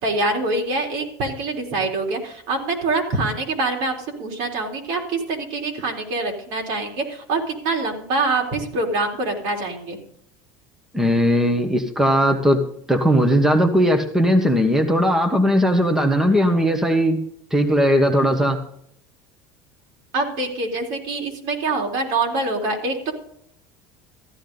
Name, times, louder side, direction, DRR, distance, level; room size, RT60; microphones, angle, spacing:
voice 1, 0.0-10.0 20.1-23.1, right 3 dB, 65° right, 1 dB, 3.8 m, -25 dB
voice 2, 10.9-12.6 12.9-17.2 17.5-18.6, equal, 5° right, 5 dB, 1.2 m, -18 dB
14.5 x 11.5 x 3.9 m, 0.66 s
cardioid pair, 140°, 9 cm